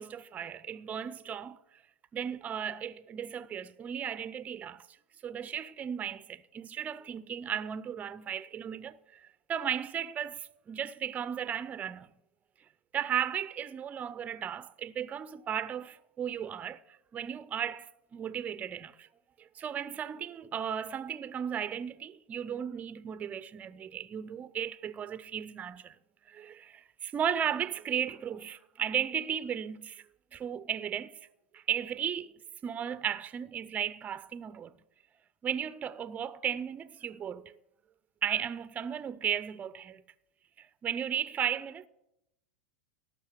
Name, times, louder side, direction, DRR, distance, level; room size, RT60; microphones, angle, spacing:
voice 1, 0.0-1.6 2.1-4.9 5.2-12.1 12.9-19.1 19.4-26.0 26.3-30.1 30.3-31.2 31.5-32.3 32.6-34.7 35.4-37.6 38.2-40.0 40.6-41.9, right 8 dB, 25° right, 0.4 m, -35 dB
12.5 x 6.2 x 7.7 m
hypercardioid pair, 95°, 6 cm